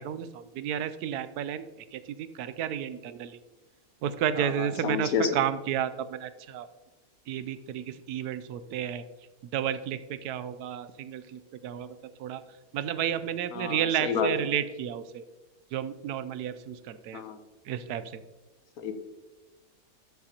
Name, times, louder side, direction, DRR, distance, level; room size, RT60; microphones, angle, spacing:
voice 1, 0.0-1.6 1.9-3.3 4.0-6.7 7.3-9.0 9.5-11.9 12.2-12.4 12.7-15.2 15.7-17.2 17.7-18.0, right 9 dB, 85° right, 13 dB, 1.1 m, -32 dB
voice 2, 4.4-5.4 13.5-14.5 17.1-17.4 18.8-18.9, left 6 dB, 75° left, 8 dB, 1.3 m, -30 dB
12.5 x 7.7 x 2.9 m, 1.1 s
omnidirectional pair, 1.6 m